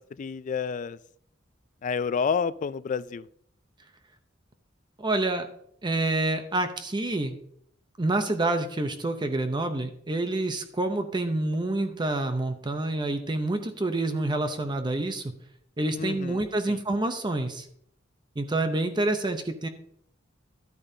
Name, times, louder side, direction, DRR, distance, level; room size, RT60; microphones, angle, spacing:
voice 1, 0.2-1.0 1.8-3.3 16.0-16.8, left 6 dB, 40° left, 16 dB, 0.3 m, -29 dB
voice 2, 5.0-5.5 5.8-7.4 8.0-15.3 15.8-17.7 18.4-19.7, right 2 dB, 25° right, 7 dB, 0.6 m, -27 dB
12.0 x 8.7 x 2.7 m, 0.69 s
head